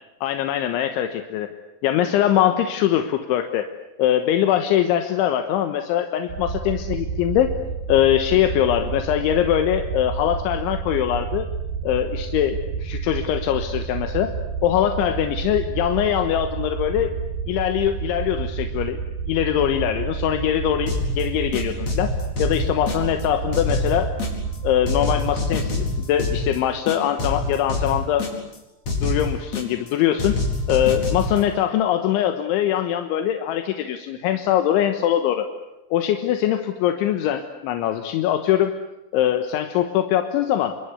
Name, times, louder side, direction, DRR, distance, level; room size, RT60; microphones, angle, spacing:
voice 1, 0.2-1.5 1.8-3.7 4.0-7.5 7.9-11.5 11.8-14.4 14.6-17.1 17.5-19.0 19.3-22.1 22.4-24.2 24.6-28.3 29.0-30.4 30.7-35.5 35.9-38.7 39.1-40.8, left 11 dB, 85° left, 7 dB, 3.7 m, -22 dB
sound 1, 6.3-25.0, right 6 dB, 60° right, 3.6 m, -30 dB
sound 2, 20.9-21.2 21.5-23.2 23.5-24.6 24.9-26.6 26.9-28.6 28.9-29.9 30.2-31.4, left 2 dB, 40° left, 5.6 m, -26 dB
27.0 x 24.5 x 8.2 m, 0.94 s
omnidirectional pair, 5.3 m